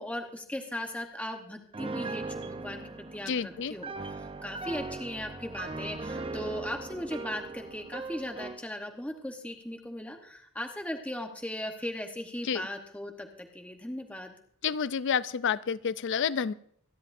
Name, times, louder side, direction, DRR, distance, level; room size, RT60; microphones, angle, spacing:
voice 1, 0.0-3.9 4.4-14.3, left 1 dB, 5° left, 3 dB, 1.0 m, -38 dB
Piano, 1.7-8.7, right 3 dB, 25° right, 0.6 m, -39 dB
voice 2, 3.3-3.7 12.4-12.7 14.6-16.5, left 7 dB, 55° left, 17 dB, 0.4 m, -29 dB
25.0 x 10.5 x 2.6 m, 0.64 s
head